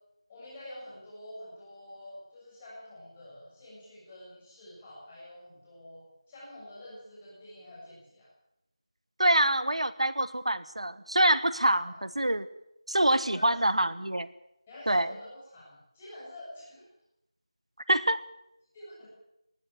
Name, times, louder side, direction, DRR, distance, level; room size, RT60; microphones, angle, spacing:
voice 1, 0.3-8.3 11.9-12.0 13.3-13.5 14.7-16.8 18.7-19.1, left 1 dB, 10° left, -7 dB, 7.4 m, -47 dB
voice 2, 9.2-12.5 12.9-14.3 14.9-15.1 17.9-18.2, right 1 dB, 85° right, 15 dB, 1.4 m, -25 dB
20.5 x 14.5 x 9.5 m, 0.84 s
figure-of-eight pair, 175°, 3 cm